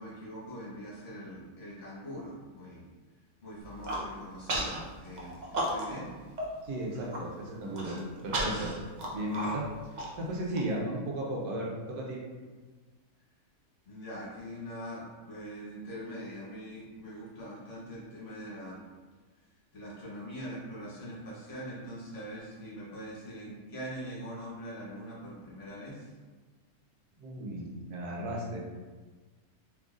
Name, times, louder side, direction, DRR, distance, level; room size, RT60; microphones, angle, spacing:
voice 1, 0.0-2.9 3.4-6.1 13.9-18.8 19.7-26.1, equal, 55° left, -6 dB, 1.3 m, -43 dB
Human voice, 3.6-4.0 4.5-4.8 5.2-6.1 6.4-6.5 6.9-7.2 7.7-10.6, right 1 dB, 65° right, 0.4 m, -33 dB
voice 2, 6.6-8.0 8.2-8.7 9.1-9.6 10.2-12.2 27.2-28.6, right 1 dB, 85° right, -2 dB, 1.3 m, -35 dB
3.7 x 3.2 x 2.4 m, 1.3 s
omnidirectional pair, 1.6 m